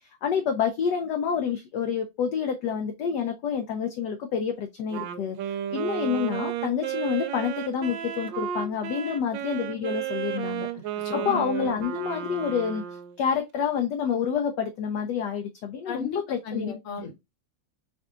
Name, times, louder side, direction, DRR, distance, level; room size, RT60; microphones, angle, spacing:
voice 1, 0.2-5.4 5.7-10.7 11.1-12.8 13.2-17.1, left 7 dB, 70° left, 1.1 m, -28 dB
Wind instrument woodwind instrument, 4.9-13.2, right 10 dB, 75° right, 1.2 m, -33 dB
voice 2, 11.0-11.7 15.9-16.2 16.4-17.1, left 5 dB, 50° left, 1.2 m, -34 dB
4.7 x 2.6 x 3.7 m
omnidirectional pair, 2.2 m